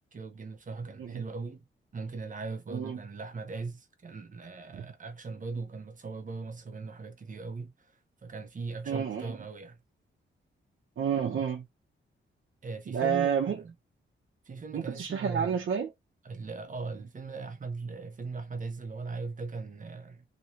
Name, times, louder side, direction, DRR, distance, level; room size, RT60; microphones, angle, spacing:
voice 1, 0.1-1.6 1.9-7.9 8.2-9.8 12.6-13.7 14.4-15.6 16.2-20.2, right 4 dB, 40° right, 0.9 m, -39 dB
voice 2, 8.9-9.4 11.0-11.6 12.9-13.6 14.7-15.9, right 7 dB, 70° right, 0.9 m, -30 dB
3.0 x 2.9 x 3.0 m
wide cardioid pair, 125°, 21 cm